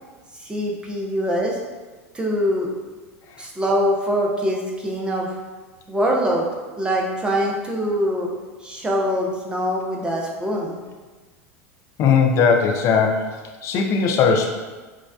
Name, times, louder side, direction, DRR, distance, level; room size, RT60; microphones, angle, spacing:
voice 1, 0.4-1.6 2.1-2.7 3.4-5.3 5.9-6.5 6.8-8.3 8.6-10.8, equal, 10° right, -1 dB, 0.7 m, -23 dB
voice 2, 12.0-14.5, left 5 dB, 40° left, 3 dB, 0.5 m, -19 dB
6.3 x 2.4 x 2.3 m, 1.3 s
figure-of-eight pair, 80°, 8 cm